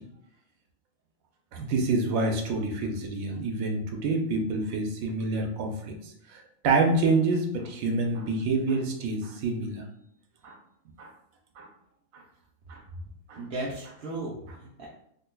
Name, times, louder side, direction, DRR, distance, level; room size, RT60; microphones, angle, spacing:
voice 1, 1.5-9.8 10.4-10.6 11.0-11.1 11.6-11.7 12.1-12.2 12.7-12.8 13.3-13.4, right 3 dB, 85° right, 2 dB, 1.1 m, -27 dB
voice 2, 13.4-14.9, right 2 dB, 55° right, -6 dB, 0.7 m, -36 dB
5.1 x 2.2 x 2.2 m, 0.74 s
omnidirectional pair, 1.4 m